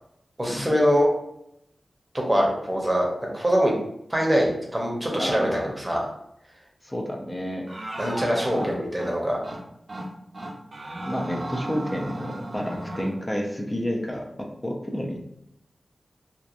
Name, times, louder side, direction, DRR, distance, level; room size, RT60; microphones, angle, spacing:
voice 1, 0.4-1.1 2.1-3.1 3.3-3.7 4.1-6.1 8.0-9.4, equal, 15° right, -1 dB, 0.8 m, -23 dB
voice 2, 5.2-5.7 6.8-7.7 8.5-8.7 11.1-15.2, equal, 25° left, 1 dB, 0.5 m, -30 dB
sound 1, 7.7-9.1 9.4-9.6 9.9-10.1 10.3-13.1, right 1 dB, 50° right, 0.6 m, -35 dB
2.8 x 2.2 x 2.5 m, 0.78 s
wide cardioid pair, 60°, 0 cm